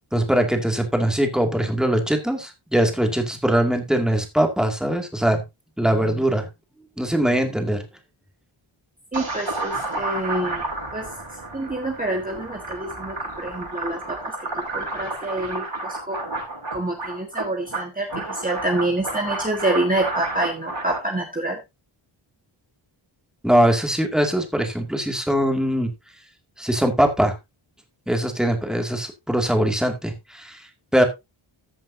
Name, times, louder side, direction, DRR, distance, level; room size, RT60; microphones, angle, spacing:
voice 1, 0.1-5.4 5.8-6.5 7.0-7.9 23.4-25.9 26.6-27.3 28.1-30.7 30.9-31.0, right 1 dB, ahead, 4 dB, 2.3 m, -21 dB
voice 2, 9.1-10.6 10.9-11.1 11.5-16.2 16.7-21.6, right 1 dB, 15° right, 2 dB, 1.6 m, -27 dB
sound 1, 9.1-21.0, right 2 dB, 60° right, 6.2 m, -31 dB
14.5 x 7.4 x 2.7 m, 0.22 s
wide cardioid pair, 120°, 49 cm